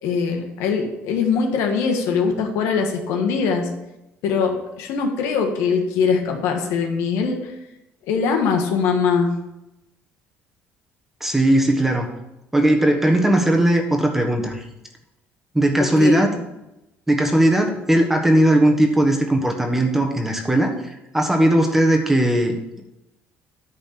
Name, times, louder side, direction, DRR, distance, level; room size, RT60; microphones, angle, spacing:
voice 1, 0.0-3.7 4.2-7.5 8.1-9.4 15.8-16.3, left 5 dB, 80° left, 3 dB, 1.5 m, -22 dB
voice 2, 11.2-12.1 12.5-14.6 15.5-16.3 17.1-22.8, right 1 dB, 5° right, 3 dB, 1.4 m, -18 dB
10.5 x 4.1 x 6.7 m, 0.92 s
cardioid pair, 115°, 5 cm